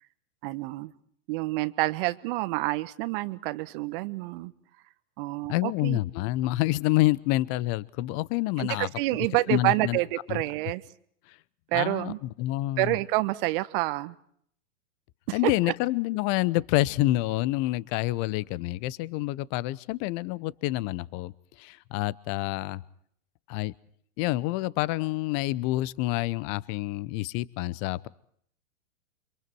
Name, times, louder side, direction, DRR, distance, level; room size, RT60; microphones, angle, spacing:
voice 1, 0.4-0.9 1.3-4.5 5.2-6.0 8.6-10.8 11.7-12.2 12.8-14.1 15.3-15.5, right 20 dB, 40° right, 13 dB, 1.4 m, -28 dB
voice 2, 5.5-8.9 9.5-10.0 10.3-10.4 11.3-11.4 11.7-13.0 15.3-21.3 21.6-22.8 23.5-23.7 24.2-28.1, left 17 dB, 35° left, 22 dB, 0.8 m, -28 dB
29.0 x 26.5 x 4.7 m, 0.66 s
figure-of-eight pair, 105°, 40 cm